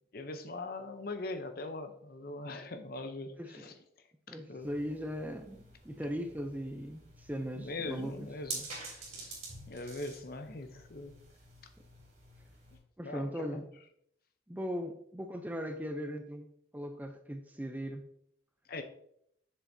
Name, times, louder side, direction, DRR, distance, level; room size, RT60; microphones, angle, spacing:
voice 1, 0.1-3.7 4.3-4.7 7.5-9.4 9.7-11.1 13.0-13.7 18.7-18.8, left 2 dB, 50° left, 8 dB, 0.6 m, -42 dB
voice 2, 3.4-3.7 4.3-8.3 13.0-13.7 14.5-18.1, equal, 10° right, 6 dB, 0.4 m, -39 dB
sound 1, 4.6-12.8, right 3 dB, 35° right, 2.9 m, -48 dB
7.5 x 6.7 x 2.7 m, 0.71 s
head